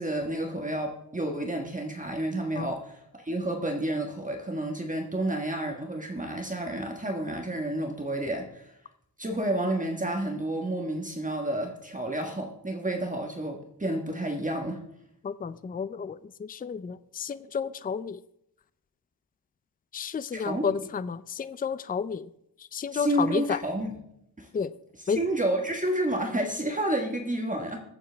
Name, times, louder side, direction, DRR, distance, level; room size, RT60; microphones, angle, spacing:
voice 1, 0.0-8.7 9.2-14.8 20.3-20.8 22.9-24.0 24.4-24.5 24.9-27.8, right 1 dB, 20° right, 2 dB, 1.4 m, -30 dB
voice 2, 15.2-18.2 19.9-22.3 22.7-23.6 24.5-24.7 25.1-25.2, left 6 dB, 25° left, 15 dB, 0.4 m, -31 dB
22.0 x 7.5 x 3.4 m, 0.77 s
wide cardioid pair, 120°, 38 cm